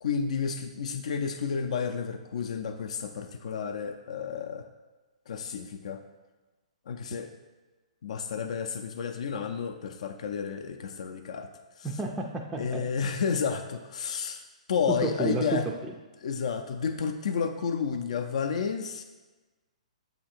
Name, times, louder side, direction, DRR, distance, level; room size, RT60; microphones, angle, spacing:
voice 1, 0.0-4.7 5.3-6.0 6.9-7.3 8.0-11.5 11.8-11.9 12.5-14.4 14.7-15.6 16.2-19.0, left 6 dB, 65° left, 6 dB, 0.4 m, -31 dB
voice 2, 11.8-12.8 14.9-15.9, right 3 dB, 10° right, 0 dB, 0.3 m, -31 dB
7.6 x 2.8 x 4.3 m, 1.2 s
hypercardioid pair, 155°, 4 cm